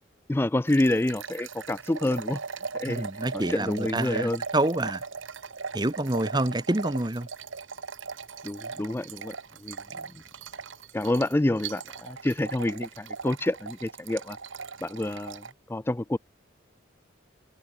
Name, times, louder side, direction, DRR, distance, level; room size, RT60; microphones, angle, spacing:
voice 1, 0.3-2.4 2.8-3.0 3.3-4.4 8.4-9.3 9.6-9.8 10.9-14.4 14.8-15.4 15.7-16.2, left 1 dB, 10° left, 0.3 m, -27 dB
sound 1, 0.7-15.5, right 5 dB, 90° right, 1.5 m, -39 dB
voice 2, 2.9-5.0 5.7-7.3, right 2 dB, 20° right, 1.0 m, -27 dB
head